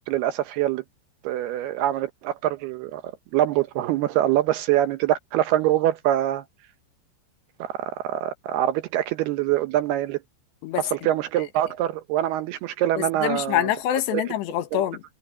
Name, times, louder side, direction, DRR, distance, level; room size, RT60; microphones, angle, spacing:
voice 1, 0.1-0.8 1.2-3.0 3.3-6.4 7.6-10.2 10.8-13.7 14.1-14.2 14.7-14.8, right 13 dB, 75° right, 2.5 m, -24 dB
voice 2, 13.0-15.1, left 12 dB, 75° left, 3.3 m, -25 dB
omnidirectional pair, 5.2 m